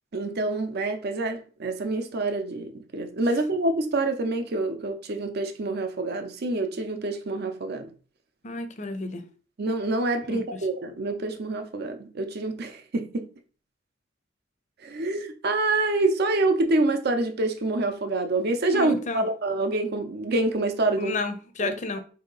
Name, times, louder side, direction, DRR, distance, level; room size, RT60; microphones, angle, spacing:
voice 1, 0.1-7.9 9.6-13.3 14.8-21.2 21.6-22.0, right 2 dB, 55° right, 0.6 m, -27 dB
voice 2, 8.4-9.2 10.3-10.4 18.7-19.2 21.0-22.0, left 3 dB, 40° left, 0.5 m, -31 dB
3.9 x 2.8 x 3.8 m
head